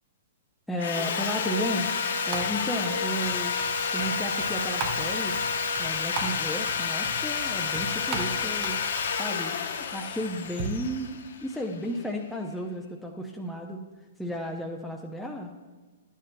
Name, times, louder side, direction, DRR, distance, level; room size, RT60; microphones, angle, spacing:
voice 1, 0.7-1.9 2.3-3.5 3.9-5.4 5.8-8.8 9.2-9.6 9.9-13.8 14.2-15.5, equal, ahead, 0 dB, 0.7 m, -33 dB
Sawing, 0.8-11.9, left 6 dB, 60° left, 0.8 m, -30 dB
sound 1, 1.0-10.7, right 3 dB, 40° right, 1.1 m, -40 dB
11.5 x 9.2 x 2.2 m, 1.3 s
figure-of-eight pair, 115°, 0 cm